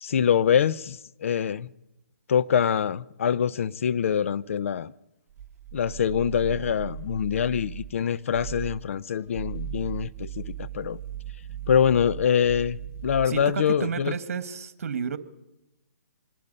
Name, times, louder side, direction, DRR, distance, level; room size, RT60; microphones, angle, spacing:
voice 1, 0.0-1.7 2.3-4.9 5.7-11.0 11.7-14.1, left 8 dB, 55° left, 0.7 m, -24 dB
sound 1, 5.3-8.0 8.3-8.8 9.2-13.5, right 10 dB, 20° right, 1.6 m, -37 dB
voice 2, 13.3-15.2, right 6 dB, 60° right, 1.8 m, -31 dB
25.5 x 20.0 x 5.5 m
hypercardioid pair, 145°, 8 cm